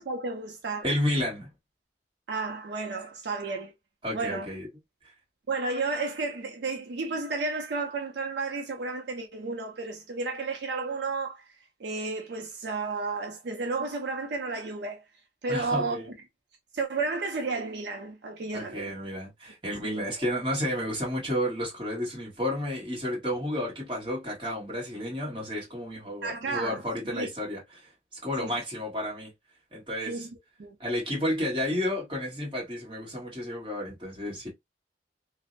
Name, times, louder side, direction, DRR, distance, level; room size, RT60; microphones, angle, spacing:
voice 1, 0.0-0.9 2.3-3.7 4.1-4.5 5.5-15.0 15.4-16.0 16.7-18.9 19.7-20.0 26.2-27.3 28.4-28.6 30.1-30.3 30.6-30.8, right 3 dB, 75° right, 0.5 m, -32 dB
voice 2, 0.8-1.5 4.0-4.7 15.5-16.1 18.5-29.3 29.7-30.3 30.8-34.5, equal, 30° right, 1.3 m, -31 dB
2.5 x 2.0 x 2.5 m
head